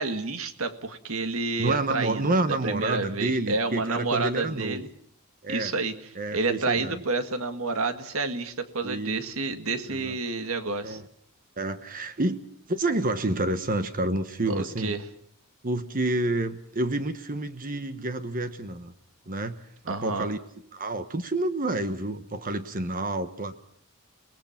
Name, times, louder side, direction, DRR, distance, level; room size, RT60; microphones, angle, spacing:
voice 1, 0.0-2.3 2.6-4.9 5.5-5.9 6.3-11.0 14.5-15.0 19.9-20.3, right 3 dB, 70° right, 9 dB, 1.9 m, -29 dB
voice 2, 1.6-4.8 5.4-5.7 6.1-7.0 8.8-9.3 9.9-10.1 10.8-11.0 11.6-12.4 12.7-14.9 15.6-18.9 19.3-19.6 19.9-20.4 20.7-23.6, right 2 dB, 40° right, 10 dB, 1.2 m, -29 dB
29.5 x 20.0 x 5.9 m, 0.64 s
head